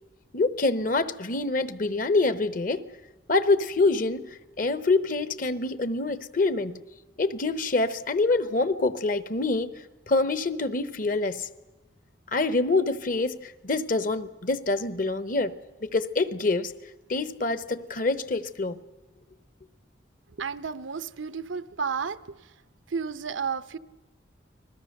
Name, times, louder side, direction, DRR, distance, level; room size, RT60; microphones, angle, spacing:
voice 1, 0.3-2.9 3.3-6.8 7.2-11.5 12.3-15.5 15.8-16.7 17.1-18.8, left 3 dB, 45° left, 0.9 m, -26 dB
voice 2, 20.4-22.4 22.9-23.8, right 6 dB, 90° right, 0.8 m, -32 dB
30.0 x 20.5 x 6.6 m
head